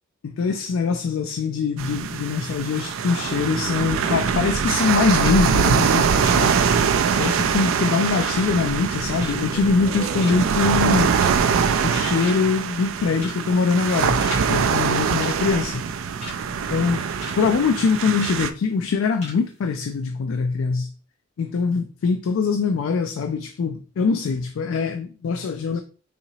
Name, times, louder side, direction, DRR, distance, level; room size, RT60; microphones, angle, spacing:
voice 1, 0.2-6.5 7.1-11.1 11.8-15.8 16.7-17.0 17.3-20.9 21.4-25.8, left 5 dB, 85° left, 0.3 m, -23 dB
sound 1, 1.8-18.5, right 6 dB, 90° right, 0.4 m, -23 dB
sound 2, 5.2-5.4 5.7-9.9 10.2-10.6 11.0-11.6 11.9-12.0 12.2-12.6 13.1-13.4 13.7-14.5 14.7-14.9 15.2-16.4 16.8-17.4 17.7-17.8 18.2-18.4 18.8-18.9 19.2-19.4 19.7-19.8, left 2 dB, 35° left, 1.8 m, -38 dB
sound 3, 9.3-13.0, equal, 15° left, 0.5 m, -42 dB
4.1 x 2.8 x 2.8 m
head